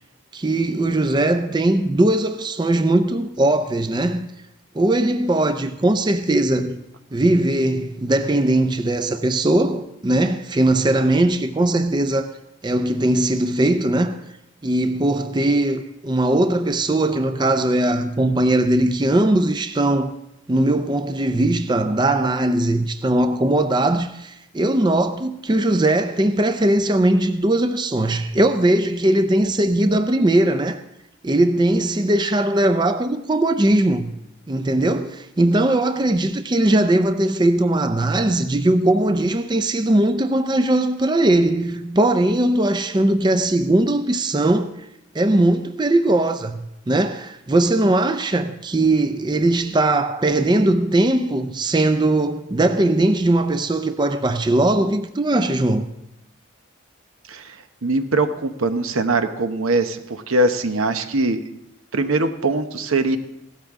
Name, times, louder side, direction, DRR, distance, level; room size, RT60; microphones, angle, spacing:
voice 1, 0.3-4.3 4.7-6.8 7.1-12.3 12.6-14.2 14.6-20.1 20.5-30.8 31.2-34.1 34.5-44.7 45.1-55.9, right 1 dB, 20° right, 0.4 m, -19 dB
voice 2, 57.3-61.4 61.9-63.2, right 2 dB, 85° right, 0.9 m, -22 dB
16.0 x 13.0 x 3.6 m
head